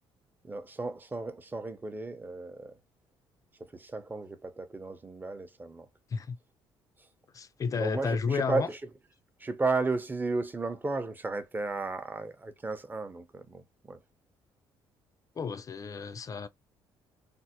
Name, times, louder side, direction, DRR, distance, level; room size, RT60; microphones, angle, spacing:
voice 1, 0.4-2.7 3.7-5.9 7.8-8.8 9.4-14.0, right 3 dB, 20° right, 0.6 m, -34 dB
voice 2, 7.3-8.7 15.4-16.5, left 5 dB, 35° left, 0.4 m, -32 dB
3.3 x 2.0 x 2.8 m
cardioid pair, 100°, 10 cm